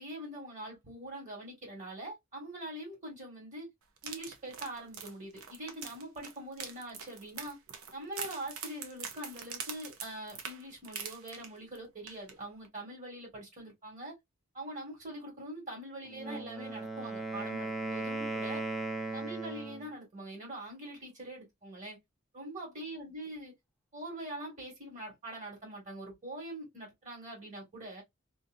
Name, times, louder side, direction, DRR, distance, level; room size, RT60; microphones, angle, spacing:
voice 1, 0.0-3.7 4.0-7.6 7.9-14.2 14.5-18.6 19.1-22.0 22.3-23.5 23.9-28.0, right 1 dB, 35° right, 1.8 m, -43 dB
sound 1, 4.0-11.8 12.1-12.3 12.6-12.7, right 6 dB, 80° right, 0.7 m, -44 dB
Wind instrument woodwind instrument, 16.1-19.9, right 2 dB, ahead, 0.5 m, -37 dB
2.8 x 2.6 x 2.5 m
head